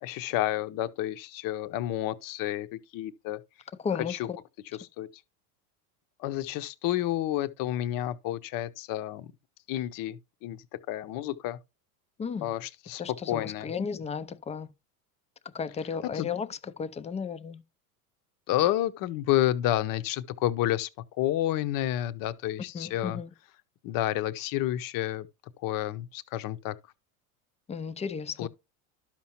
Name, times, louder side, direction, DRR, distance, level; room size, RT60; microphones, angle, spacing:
voice 1, 0.0-3.4 4.0-4.3 4.8-5.1 6.2-9.3 9.7-11.6 12.4-13.0 13.3-13.7 16.1-16.3 18.5-20.9 21.2-23.2 23.8-25.3 25.6-26.8 28.4-28.5, left 13 dB, 50° left, 0.8 m, -30 dB
voice 2, 3.8-4.4 12.2-12.5 13.0-14.7 15.5-17.6 22.7-23.3 27.7-28.5, left 6 dB, 15° left, 0.4 m, -34 dB
12.0 x 5.9 x 3.0 m
supercardioid pair, 100°, 44 cm